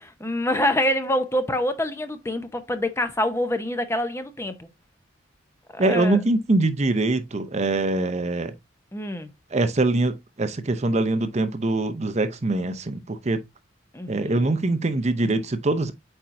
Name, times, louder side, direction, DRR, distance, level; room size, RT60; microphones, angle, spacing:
voice 1, 0.0-4.7 5.7-6.2 8.9-9.3 13.9-14.6, left 1 dB, 15° left, 0.6 m, -26 dB
voice 2, 5.8-8.5 9.5-13.4 14.1-15.9, right 2 dB, 35° right, 0.6 m, -23 dB
8.5 x 4.4 x 2.6 m
head